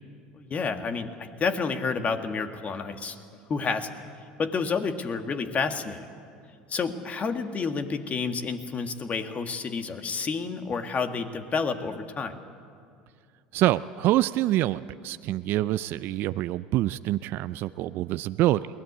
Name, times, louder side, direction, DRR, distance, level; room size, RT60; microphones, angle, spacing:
voice 1, 0.3-3.2 3.5-4.0 4.4-6.1 6.7-12.4, left 5 dB, 35° left, 7 dB, 1.8 m, -30 dB
voice 2, 13.5-18.7, right 15 dB, 55° right, 14 dB, 0.5 m, -26 dB
22.0 x 18.0 x 8.5 m, 2.3 s
hypercardioid pair, 80°, 4 cm